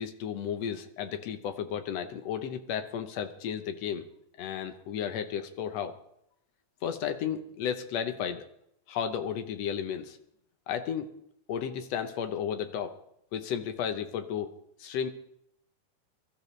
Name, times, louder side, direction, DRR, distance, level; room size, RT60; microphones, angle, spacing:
voice 1, 0.0-4.1 4.4-5.9 6.8-8.4 8.9-10.2 10.7-11.1 11.5-12.9 13.3-14.5 14.8-15.1, left 8 dB, 65° left, 8 dB, 1.8 m, -33 dB
22.5 x 13.5 x 3.2 m, 0.75 s
omnidirectional pair, 3.5 m